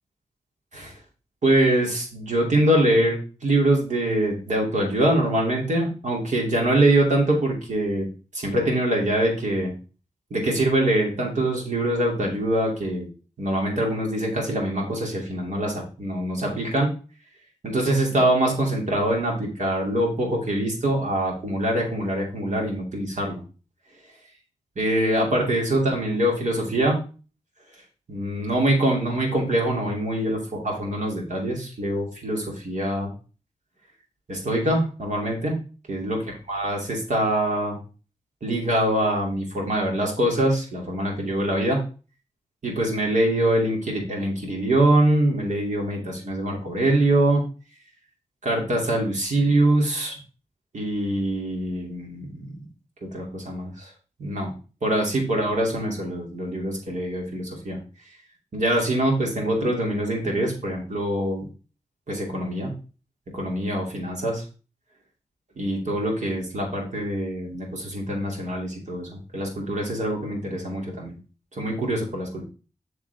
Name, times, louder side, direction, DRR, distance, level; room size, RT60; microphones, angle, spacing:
voice 1, 1.4-8.1 8.3-9.7 10.3-13.1 13.4-16.9 17.6-23.4 24.8-27.0 28.1-33.1 34.3-35.6 35.9-36.2 36.5-37.8 38.4-41.8 42.6-47.4 48.4-50.2 50.7-52.5 53.1-53.9 54.2-54.5 54.8-57.8 58.5-61.4 62.1-62.7 63.3-64.4 65.6-71.2 71.5-72.4, right 1 dB, 65° right, 0 dB, 2.8 m, -24 dB
7.2 x 6.3 x 3.5 m, 0.36 s
supercardioid pair, 40°, 14 cm